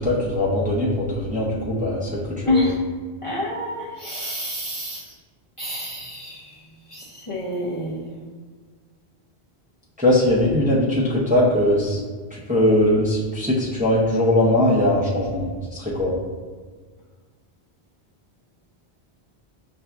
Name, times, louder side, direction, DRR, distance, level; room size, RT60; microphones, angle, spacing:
voice 1, 0.0-2.7 10.0-12.0 12.5-16.2, left 1 dB, 10° right, -7 dB, 0.6 m, -20 dB
voice 2, 2.5-2.8 3.2-5.0 5.6-6.5 6.9-8.1, left 1 dB, 35° left, -8 dB, 0.6 m, -27 dB
6.8 x 2.6 x 2.2 m, 1.5 s
omnidirectional pair, 1.1 m